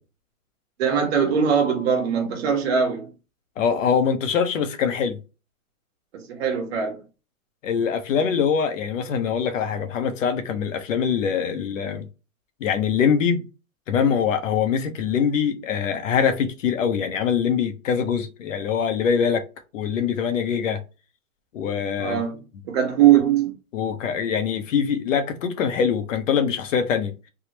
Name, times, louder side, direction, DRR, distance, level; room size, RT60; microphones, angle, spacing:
voice 1, 0.8-3.1 6.1-7.0 22.0-22.4 22.6-23.5, right 8 dB, 45° right, 1.2 m, -21 dB
voice 2, 3.6-5.2 7.6-12.1 12.6-13.4 13.9-19.4 19.7-20.8 21.5-22.2 23.7-27.1, left 7 dB, 60° left, 0.8 m, -23 dB
3.5 x 2.3 x 2.9 m
hypercardioid pair, 150°, 44 cm